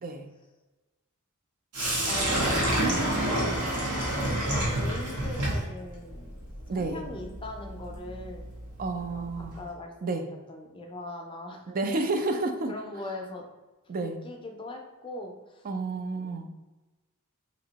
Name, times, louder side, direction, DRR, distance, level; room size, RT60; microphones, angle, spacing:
Sink (filling or washing), 1.7-9.7, right 1 dB, 85° right, 1.2 m, -29 dB
voice 1, 2.1-3.5 3.9-6.4 6.8-8.4 9.0-10.2 10.5-11.6 12.7-13.4 13.9-15.7 16.1-16.4, left 2 dB, 25° left, 2 dB, 0.5 m, -40 dB
voice 2, 6.7-7.0 8.8-9.5 10.0-10.3 11.7-12.7 13.9-14.2 15.6-16.5, right 3 dB, 40° right, 6 dB, 0.4 m, -30 dB
2.9 x 2.6 x 4.0 m, 1.1 s
head